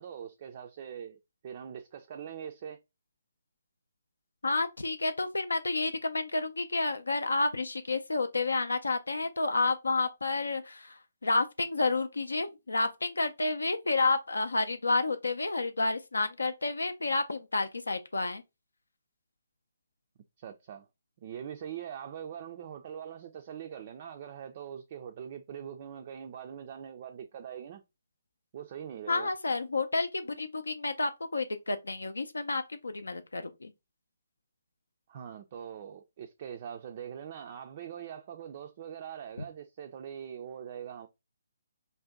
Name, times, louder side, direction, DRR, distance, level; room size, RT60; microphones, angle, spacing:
voice 1, 0.0-2.8 20.4-20.9 21.2-27.8 28.5-29.3 35.1-41.1, right 8 dB, 40° right, 0.3 m, -42 dB
voice 2, 4.4-18.4 29.1-33.7, left 3 dB, 80° left, 0.4 m, -30 dB
2.6 x 2.1 x 3.5 m
figure-of-eight pair, 140°, 0 cm